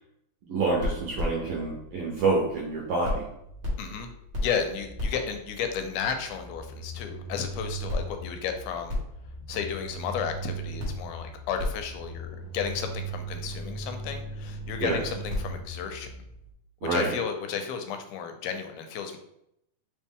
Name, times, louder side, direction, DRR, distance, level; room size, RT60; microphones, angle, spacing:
voice 1, 0.4-3.2 14.8-15.0 16.8-17.1, right 3 dB, 75° right, -3 dB, 1.4 m, -27 dB
sound 1, 0.6-2.7 3.0-16.5, equal, 50° right, 0.7 m, -36 dB
voice 2, 3.8-4.1 4.4-9.0 9.5-16.2 16.9-19.2, left 7 dB, 85° left, 6 dB, 2.1 m, -33 dB
4.3 x 3.1 x 3.5 m, 0.79 s
omnidirectional pair, 3.5 m